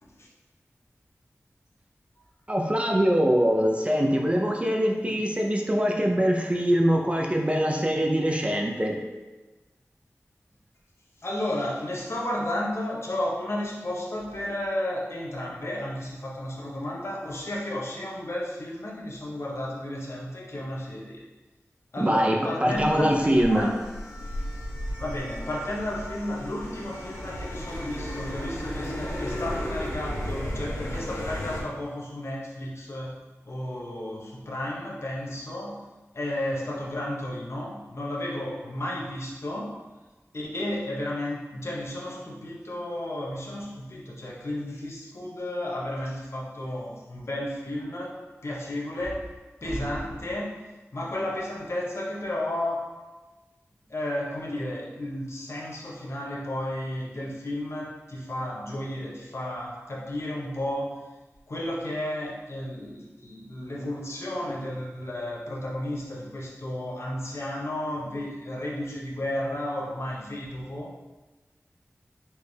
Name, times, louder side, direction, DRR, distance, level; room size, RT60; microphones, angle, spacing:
voice 1, 2.5-9.0 22.0-22.4 22.6-23.7, equal, 25° right, 1 dB, 0.6 m, -23 dB
voice 2, 11.2-21.2 21.9-23.8 25.0-39.8 40.3-49.3 49.6-50.6 50.9-53.0 53.9-61.1 61.5-71.0, left 1 dB, 60° left, -3 dB, 0.9 m, -33 dB
sound 1, 22.7-31.6, equal, 90° left, 0.7 m, -34 dB
4.4 x 3.3 x 3.3 m, 1.2 s
wide cardioid pair, 70°, 5 cm